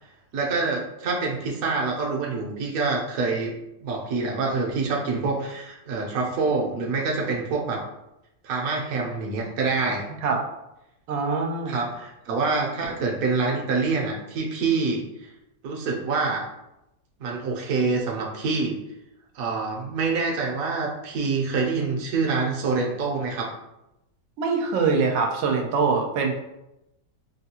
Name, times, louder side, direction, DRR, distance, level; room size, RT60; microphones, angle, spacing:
voice 1, 0.3-3.5 3.8-7.8 8.4-10.1 11.7-15.3 15.6-16.4 17.2-18.8 19.3-23.5, right 4 dB, 60° right, -1 dB, 1.0 m, -26 dB
voice 2, 11.1-11.8 24.4-26.4, right 4 dB, 90° right, 2 dB, 1.3 m, -23 dB
3.5 x 2.3 x 2.8 m, 0.89 s
omnidirectional pair, 1.9 m